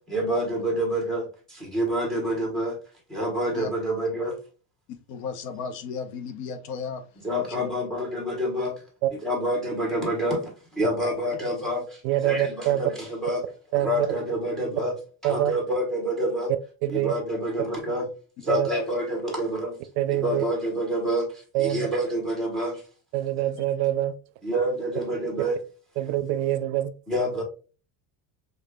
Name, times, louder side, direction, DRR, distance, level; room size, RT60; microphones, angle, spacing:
voice 1, 0.1-2.8 3.1-4.4 7.2-8.8 9.2-13.4 13.7-14.9 15.2-16.5 16.9-18.1 18.4-19.8 20.1-22.8 24.4-25.6 27.1-27.4, equal, ahead, -1 dB, 1.0 m, -27 dB
voice 2, 5.1-7.8, left 5 dB, 70° left, 8 dB, 0.7 m, -35 dB
voice 3, 12.0-12.8 13.7-14.1 15.2-15.5 16.8-17.1 18.5-18.7 20.0-20.4 21.5-21.9 23.1-24.1 26.0-26.9, right 13 dB, 80° right, 13 dB, 0.5 m, -25 dB
4.9 x 2.3 x 2.2 m, 0.35 s
cardioid pair, 175°, 36 cm